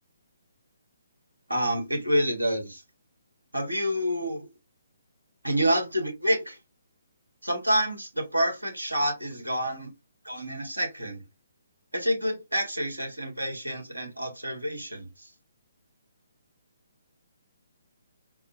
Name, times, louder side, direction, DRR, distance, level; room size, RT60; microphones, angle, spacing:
voice 1, 1.5-2.8 3.5-4.5 5.4-6.6 7.4-9.9 10.2-11.2 11.9-15.1, equal, 90° right, 1.4 m, -28 dB
3.9 x 2.1 x 3.0 m
figure-of-eight pair, 140°, 0 cm